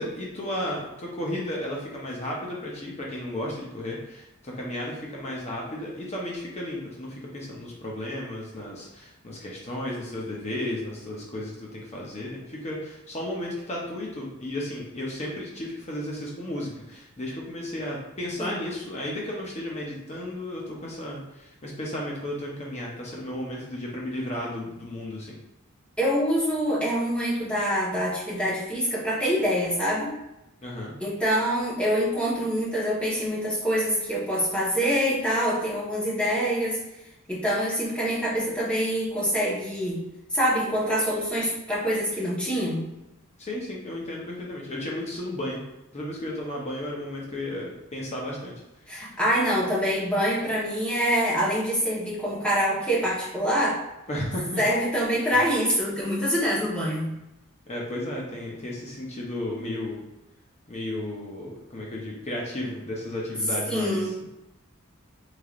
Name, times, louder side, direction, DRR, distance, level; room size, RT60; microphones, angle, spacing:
voice 1, 0.0-25.3 30.6-30.9 43.4-45.6 45.9-48.5 54.1-54.6 57.7-60.0 60.7-64.0, left 1 dB, 30° left, -3 dB, 0.7 m, -34 dB
voice 2, 26.0-30.1 31.0-36.8 37.3-40.0 40.3-42.9 48.9-53.8 54.6-57.1 63.7-64.1, equal, 5° left, -7 dB, 1.0 m, -25 dB
3.7 x 3.2 x 2.4 m, 0.92 s
head